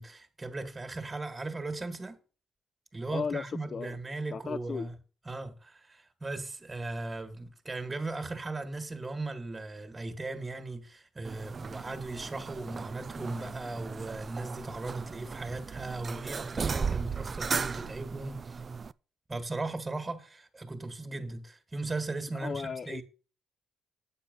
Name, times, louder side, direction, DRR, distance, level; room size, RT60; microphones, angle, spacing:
voice 1, 0.0-2.2 2.9-4.9 5.3-18.6 19.3-23.0, right 2 dB, 25° right, 1.9 m, -38 dB
voice 2, 3.1-3.4 3.7-4.0 4.3-4.9 22.3-23.0, left 5 dB, 45° left, 0.6 m, -35 dB
sound 1, 11.2-18.9, right 5 dB, 45° right, 0.4 m, -36 dB
8.8 x 6.8 x 5.4 m
supercardioid pair, 60°, 0 cm